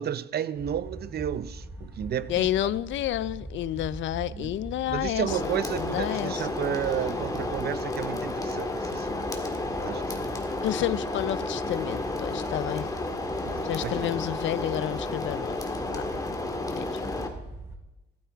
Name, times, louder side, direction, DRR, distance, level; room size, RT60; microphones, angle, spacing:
voice 1, 0.0-2.7 4.3-4.5 4.9-9.2 9.8-10.3 13.5-14.1, right 9 dB, 55° right, 0.6 m, -32 dB
sound 1, 0.6-17.8, right 2 dB, 10° right, 3.0 m, -42 dB
voice 2, 2.3-6.5 10.6-12.9 13.6-15.6 15.9-16.0 16.8-17.0, left 13 dB, 70° left, 0.5 m, -30 dB
sound 2, 5.3-17.3, left 2 dB, 20° left, 1.8 m, -32 dB
14.0 x 12.5 x 3.5 m
cardioid pair, 90°, 20 cm